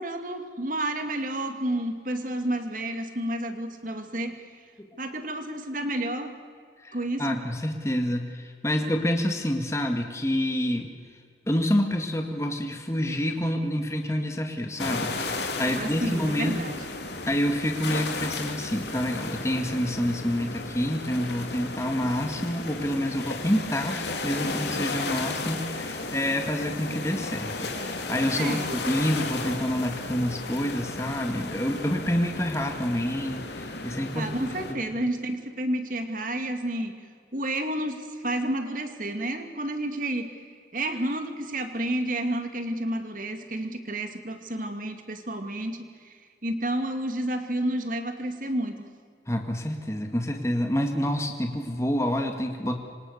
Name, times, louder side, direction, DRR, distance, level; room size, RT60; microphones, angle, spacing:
voice 1, 0.0-4.6 5.0-6.3 6.9-7.4 15.7-16.8 28.4-28.8 34.1-37.0 37.3-40.4 40.7-46.1 46.4-48.9, right 1 dB, 45° right, 7 dB, 2.4 m, -30 dB
voice 2, 6.8-10.9 11.5-16.6 17.3-34.5 34.9-35.0 49.3-52.8, equal, 15° left, 4 dB, 1.9 m, -28 dB
sound 1, 14.8-34.7, left 3 dB, 70° left, 2.9 m, -34 dB
26.0 x 26.0 x 6.6 m, 2.1 s
head